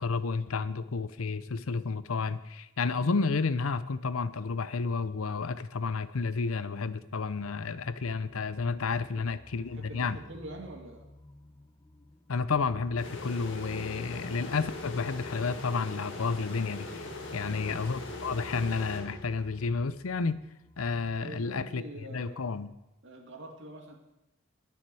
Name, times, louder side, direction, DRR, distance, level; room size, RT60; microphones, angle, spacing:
voice 1, 0.0-10.2 12.3-20.4 20.8-21.8 22.1-22.7, left 4 dB, 80° left, 14 dB, 0.6 m, -31 dB
sound 1, 7.2-21.2, left 1 dB, 20° left, 0.7 m, -52 dB
voice 2, 9.6-11.1 17.3-17.7 21.2-22.4 23.0-23.9, right 1 dB, 60° right, 1 dB, 2.3 m, -45 dB
sound 2, 13.0-19.6, left 2 dB, 60° left, 1.8 m, -41 dB
21.0 x 7.2 x 4.8 m, 0.93 s
head